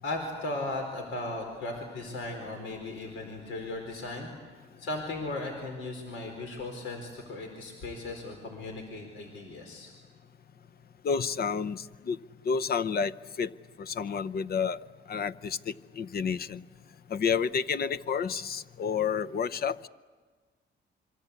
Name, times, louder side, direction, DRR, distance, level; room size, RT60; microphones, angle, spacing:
voice 1, 0.0-9.9, left 2 dB, 80° left, 3 dB, 4.4 m, -37 dB
voice 2, 11.0-12.2 12.4-13.1 13.4-13.5 13.8-14.8 15.1-16.6 17.1-19.9, left 6 dB, 50° left, 15 dB, 0.8 m, -30 dB
26.5 x 24.0 x 8.3 m, 1.4 s
cardioid pair, 90°, 20 cm